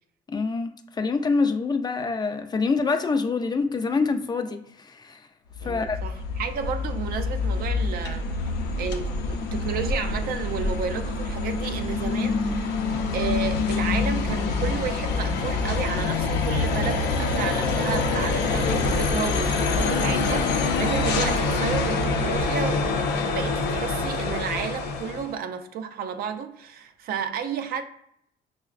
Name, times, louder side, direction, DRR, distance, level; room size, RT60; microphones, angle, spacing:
voice 1, 0.3-0.7 1.0-5.2 5.6-6.0, left 4 dB, 25° left, 0.3 m, -25 dB
sound 1, 5.5-25.3, left 3 dB, 85° left, 0.5 m, -26 dB
voice 2, 5.6-8.5 8.8-12.7 13.1-22.9 23.3-27.8, right 7 dB, 65° right, 0.4 m, -32 dB
5.5 x 2.1 x 2.4 m
cardioid pair, 110°, 17 cm